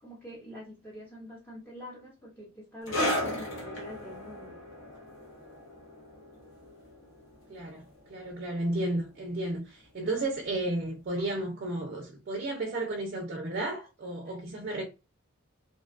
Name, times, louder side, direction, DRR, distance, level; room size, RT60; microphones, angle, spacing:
voice 1, 0.0-4.6 14.2-14.4, equal, 5° left, 0.5 m, -45 dB
sound 1, 2.9-9.9 10.1-10.3 11.1-11.2, left 1 dB, 65° left, 0.7 m, -36 dB
voice 2, 7.5-14.8, right 2 dB, 45° right, 0.4 m, -33 dB
2.6 x 2.2 x 2.3 m
head